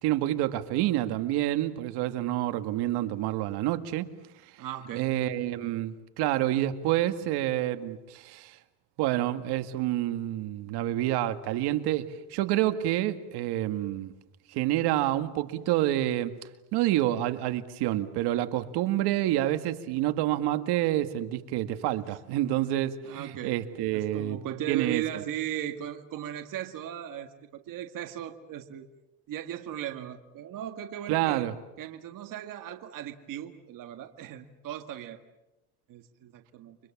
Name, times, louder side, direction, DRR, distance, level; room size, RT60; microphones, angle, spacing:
voice 1, 0.0-4.1 5.0-8.6 9.0-14.1 14.5-16.3 16.7-24.4 24.7-25.2 31.1-31.5, right 14 dB, 75° right, 9 dB, 2.0 m, -28 dB
voice 2, 4.6-5.2 23.0-23.6 23.9-28.8 29.3-31.5 31.8-35.2 35.9-36.8, right 11 dB, 50° right, 6 dB, 1.9 m, -37 dB
30.0 x 25.0 x 7.3 m, 0.95 s
cardioid pair, 135°, 40 cm